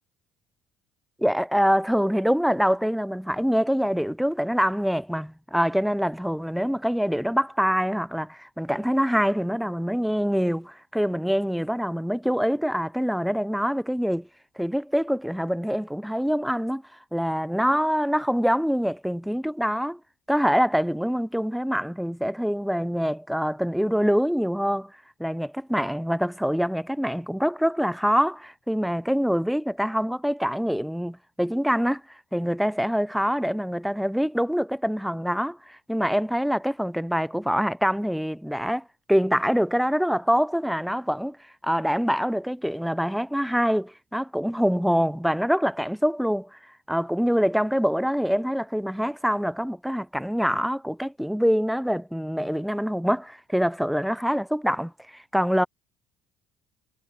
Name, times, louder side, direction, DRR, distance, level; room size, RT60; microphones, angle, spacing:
voice 1, 1.2-14.3 14.6-16.8 17.1-20.0 20.3-24.9 25.2-41.4 41.6-46.6 46.9-55.7, equal, ahead, 0.4 m, -25 dB
supercardioid pair, 90°, 0 cm